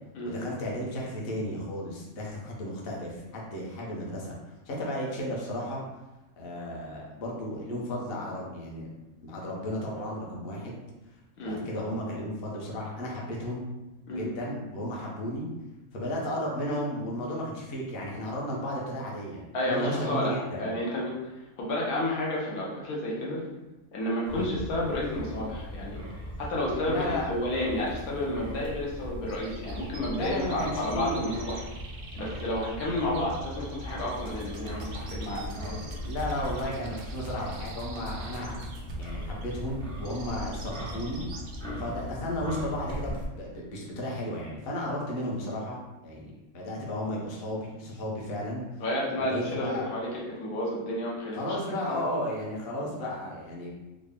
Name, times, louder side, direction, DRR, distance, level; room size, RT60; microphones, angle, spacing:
voice 1, 0.2-4.3 4.7-5.8 6.4-8.9 9.2-10.8 11.4-13.7 14.1-15.5 15.9-20.7 24.3-24.5 26.9-27.3 30.1-31.3 36.0-38.6 39.0-41.2 41.8-48.6 49.2-49.8 51.3-53.7, left 1 dB, 50° left, -3 dB, 0.8 m, -34 dB
voice 2, 19.5-21.3 21.6-23.4 23.9-26.0 26.4-31.6 32.2-35.8 41.6-41.8 48.8-52.0, left 1 dB, 80° left, -4 dB, 1.3 m, -31 dB
Wind, 24.3-43.2, equal, 5° left, 0.4 m, -39 dB
sound 1, 29.3-41.6, right 4 dB, 90° right, 0.4 m, -48 dB
sound 2, 34.1-39.1, right 3 dB, 65° right, 0.8 m, -46 dB
3.7 x 2.1 x 3.5 m, 1.0 s
omnidirectional pair, 1.5 m